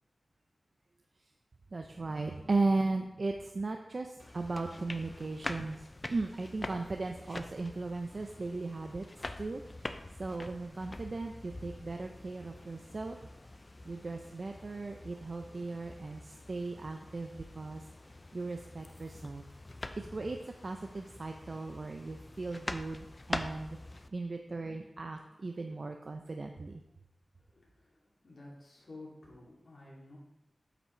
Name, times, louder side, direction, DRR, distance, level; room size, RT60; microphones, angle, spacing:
voice 1, 1.7-9.0 9.4-13.2 13.8-17.8 18.3-19.4 20.0-20.4 20.6-23.8 24.1-26.8, right 3 dB, 50° right, 4 dB, 0.5 m, -37 dB
sound 1, 4.2-24.1, left 2 dB, 30° left, 0.5 m, -45 dB
voice 2, 27.4-30.2, left 2 dB, 60° left, -4 dB, 2.6 m, -52 dB
8.3 x 5.8 x 4.4 m, 0.92 s
wide cardioid pair, 85°, 0 cm